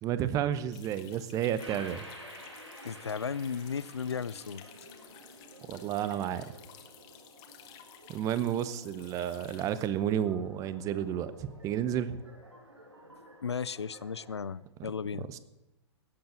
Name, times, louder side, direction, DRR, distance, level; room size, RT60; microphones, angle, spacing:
voice 1, 0.0-2.1 5.7-6.4 8.1-12.2 15.2-15.4, right 10 dB, 25° right, 14 dB, 0.8 m, -31 dB
sound 1, 0.7-9.9, left 10 dB, 30° left, 1.6 m, -54 dB
sound 2, 1.6-14.6, right 1 dB, 85° right, 2.6 m, -52 dB
voice 2, 2.8-4.6 13.4-15.3, left 6 dB, 75° left, 20 dB, 0.4 m, -35 dB
17.5 x 8.0 x 6.4 m, 0.96 s
figure-of-eight pair, 110°, 14 cm